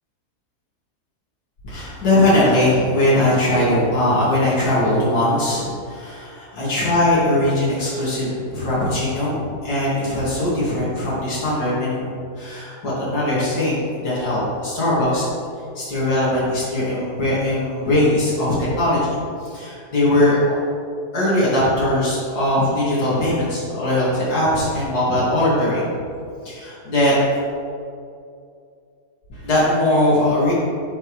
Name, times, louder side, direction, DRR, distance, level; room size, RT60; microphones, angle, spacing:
voice 1, 1.6-15.3 15.7-20.6 21.1-26.1 26.4-27.4 29.3-30.5, left 1 dB, 80° left, -9 dB, 2.7 m, -20 dB
9.8 x 5.8 x 3.2 m, 2.4 s
omnidirectional pair, 1.7 m